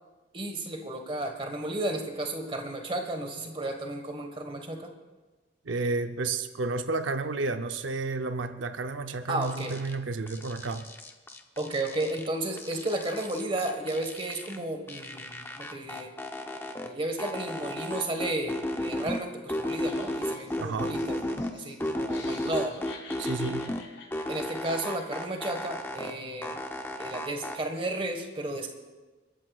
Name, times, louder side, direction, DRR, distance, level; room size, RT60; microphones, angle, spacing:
voice 1, 0.3-4.9 9.3-9.7 11.6-16.1 16.8-22.9 24.3-26.6 27.0-28.7, right 1 dB, 30° right, 1.5 m, -33 dB
voice 2, 5.7-10.9 20.6-21.0 23.2-23.7, right 3 dB, 85° right, 0.7 m, -31 dB
sound 1, 9.4-9.9 10.3-12.3 12.6-14.6 14.9-16.9 17.2-19.2 19.5-21.5 21.8-23.8 24.1-26.1 26.4-27.6, left 1 dB, 10° left, 0.8 m, -34 dB
Laughter, 19.6-25.5, left 4 dB, 80° left, 3.7 m, -50 dB
29.5 x 14.0 x 2.4 m
head